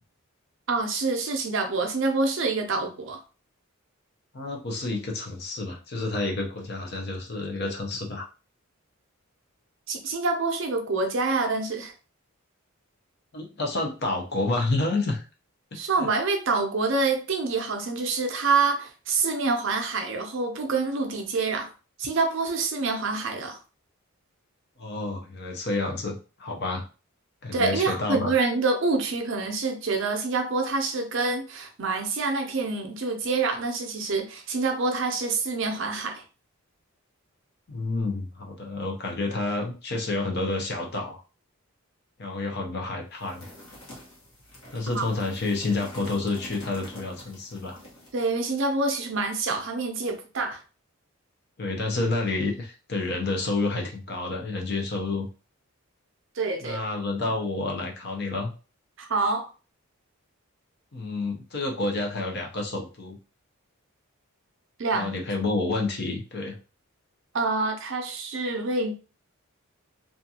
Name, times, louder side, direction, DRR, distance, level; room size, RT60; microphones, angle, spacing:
voice 1, 0.7-3.2 9.9-11.9 15.7-21.7 22.0-23.6 27.5-36.2 44.9-45.0 48.1-50.6 56.4-56.8 59.0-59.5 64.8-65.2 67.3-68.9, right 3 dB, 55° right, 0.5 m, -26 dB
voice 2, 4.3-8.3 13.3-15.2 15.7-16.1 24.8-26.8 27.4-28.3 37.7-41.2 42.2-43.4 44.7-47.8 51.6-55.3 56.6-58.5 60.9-63.2 64.9-66.6, left 2 dB, 50° left, 0.6 m, -29 dB
sound 1, 43.2-48.2, left 1 dB, 65° left, 1.1 m, -46 dB
2.5 x 2.3 x 2.7 m
head